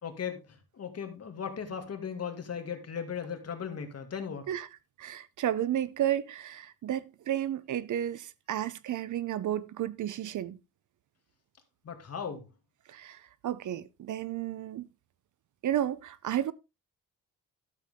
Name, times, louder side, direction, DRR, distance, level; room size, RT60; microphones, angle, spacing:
voice 1, 0.0-4.5 11.8-12.5, left 7 dB, 50° left, 2.3 m, -37 dB
voice 2, 5.0-10.6 12.9-14.9 15.6-16.5, right 11 dB, 65° right, 0.7 m, -32 dB
12.5 x 7.3 x 3.6 m
cardioid pair, 115°, 32 cm